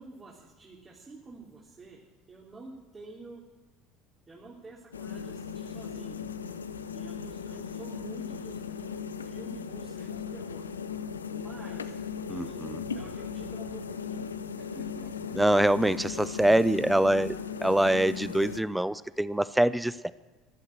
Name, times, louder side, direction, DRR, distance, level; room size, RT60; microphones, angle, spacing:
voice 1, 0.0-2.0 2.3-3.4 4.3-6.2 6.9-10.6 11.3-12.0 12.4-12.6 12.9-14.3 14.6-15.4, right 3 dB, 25° right, -3 dB, 3.5 m, -48 dB
sound 1, 4.9-18.6, left 6 dB, 85° left, 0.7 m, -37 dB
voice 2, 12.3-12.8 15.3-20.1, right 1 dB, 5° right, 17 dB, 0.6 m, -25 dB
15.5 x 11.5 x 7.5 m, 1.2 s
hypercardioid pair, 65°, 0 cm